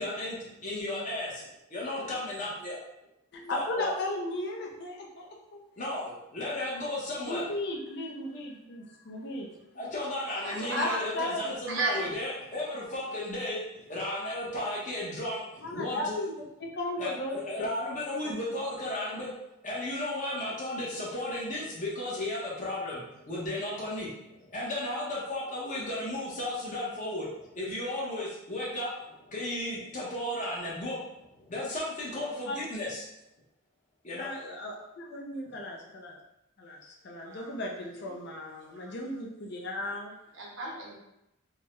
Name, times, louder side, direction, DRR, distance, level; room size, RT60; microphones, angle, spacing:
voice 1, 0.0-2.8 3.5-3.9 5.8-7.5 9.7-16.3 17.0-19.3 19.6-33.1 34.0-34.3, left 1 dB, 35° left, -5 dB, 0.9 m, -34 dB
voice 2, 3.3-5.6 7.3-9.5 10.7-10.9 11.1-11.6 15.6-16.3 16.6-17.7 18.2-18.3 20.3-20.4 32.5-32.6 34.1-36.2 36.6-40.1, left 1 dB, 50° left, -1 dB, 0.5 m, -36 dB
voice 3, 10.4-11.0 11.7-12.0 37.2-37.8 38.8-38.9 40.3-41.0, right 2 dB, 65° right, -2 dB, 0.8 m, -34 dB
3.5 x 2.1 x 3.0 m, 0.86 s
head